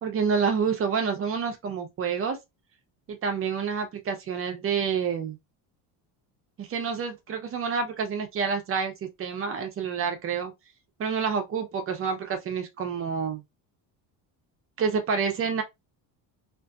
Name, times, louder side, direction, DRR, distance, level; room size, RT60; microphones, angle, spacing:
voice 1, 0.0-2.4 3.1-5.4 6.6-10.5 11.0-13.4 14.8-15.6, right 6 dB, 30° right, 0.6 m, -28 dB
2.6 x 2.5 x 2.3 m
cardioid pair, 150°, 44 cm